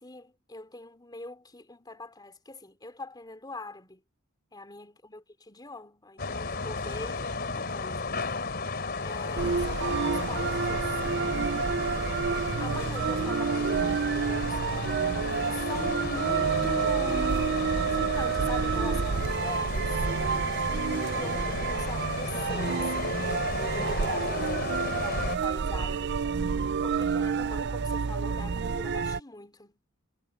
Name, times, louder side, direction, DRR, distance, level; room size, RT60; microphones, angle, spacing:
voice 1, 0.0-4.0 4.5-8.1 9.0-11.3 12.6-14.6 15.5-17.4 17.8-19.9 21.2-24.8 25.0-26.1 26.8-29.7, left 2 dB, 20° left, 3.3 m, -43 dB
sound 1, 6.2-25.4, left 3 dB, 50° left, 3.3 m, -34 dB
sound 2, 9.4-29.2, right 5 dB, 55° right, 0.5 m, -29 dB
head